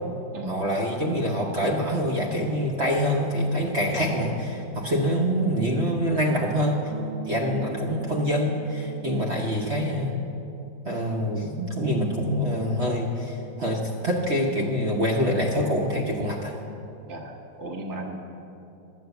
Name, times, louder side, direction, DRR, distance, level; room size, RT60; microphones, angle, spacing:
voice 1, 0.5-6.8 7.3-10.2 10.8-16.5, equal, 45° right, -1 dB, 1.0 m, -25 dB
sound 1, 6.9-10.1, right 7 dB, 75° right, 1.4 m, -40 dB
voice 2, 17.1-18.2, right 2 dB, 15° right, 0 dB, 0.7 m, -35 dB
12.0 x 7.6 x 8.0 m, 2.8 s
omnidirectional pair, 2.1 m